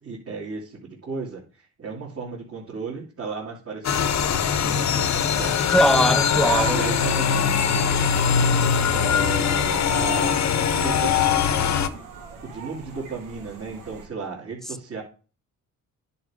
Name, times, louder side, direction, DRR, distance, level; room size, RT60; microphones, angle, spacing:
voice 1, 0.0-5.6 6.1-6.2 6.7-7.9 8.9-10.4 10.8-11.9 12.4-15.0, right 5 dB, 45° right, 2.8 m, -35 dB
sound 1, 3.8-11.9, left 7 dB, 55° left, 0.8 m, -21 dB
voice 2, 5.7-6.8, equal, ahead, 0.4 m, -21 dB
sound 2, 6.4-14.1, right 6 dB, 85° right, 2.2 m, -37 dB
10.0 x 4.4 x 5.0 m
cardioid pair, 80°, 33 cm